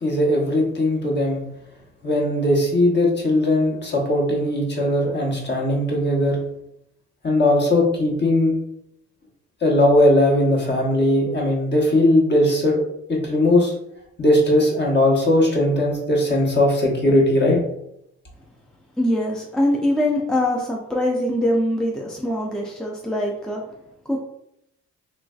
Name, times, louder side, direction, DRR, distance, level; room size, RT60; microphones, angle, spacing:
voice 1, 0.0-1.4 2.0-6.4 7.2-8.5 9.6-12.8 13.1-13.7 14.2-17.6, left 1 dB, 35° left, -1 dB, 1.0 m, -19 dB
voice 2, 19.0-23.6 24.1-24.2, left 1 dB, ahead, -1 dB, 0.4 m, -23 dB
3.1 x 2.5 x 2.3 m, 0.76 s
cardioid pair, 90°, 30 cm